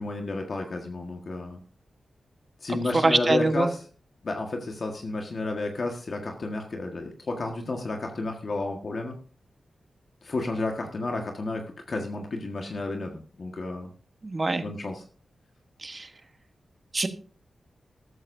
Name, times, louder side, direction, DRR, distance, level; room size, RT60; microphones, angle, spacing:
voice 1, 0.0-1.6 2.6-3.8 4.2-9.2 10.2-13.9 14.6-15.0, left 2 dB, 45° left, 2 dB, 1.6 m, -31 dB
voice 2, 3.0-3.7 14.2-14.6 15.8-16.1 16.9-17.1, right 2 dB, 30° right, 8 dB, 1.2 m, -24 dB
14.0 x 13.5 x 2.7 m, 0.40 s
wide cardioid pair, 125°, 0 cm